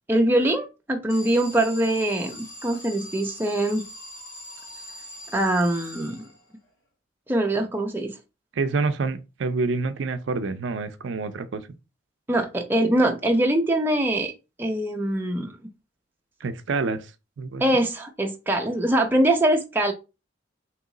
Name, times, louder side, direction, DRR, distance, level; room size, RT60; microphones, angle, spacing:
voice 1, 0.1-3.8 5.3-6.3 7.3-8.2 12.3-14.3 14.6-15.5 17.6-19.9, right 1 dB, 10° right, 0.5 m, -23 dB
Alarm, 1.1-6.7, equal, 65° left, 2.3 m, -42 dB
voice 2, 8.6-11.6 16.4-17.1 17.4-17.6, right 4 dB, 70° right, 0.4 m, -27 dB
3.0 x 2.9 x 3.7 m
head